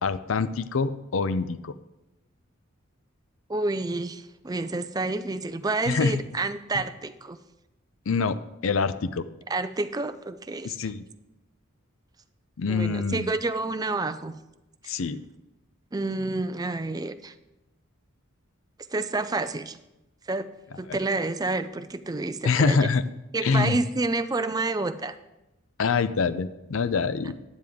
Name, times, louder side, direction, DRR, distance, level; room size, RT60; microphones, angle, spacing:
voice 1, 0.0-1.7 5.9-6.2 8.1-9.2 10.6-11.0 12.6-13.3 14.9-15.2 20.9-21.0 22.4-23.0 23.4-23.8 25.8-27.3, left 4 dB, 70° left, 14 dB, 0.5 m, -25 dB
voice 2, 3.5-7.4 9.5-10.7 12.7-14.3 15.9-17.3 18.9-19.8 20.3-20.5 20.8-22.8 23.3-25.2, right 2 dB, 20° right, 11 dB, 0.4 m, -29 dB
10.5 x 9.4 x 3.5 m, 0.96 s
head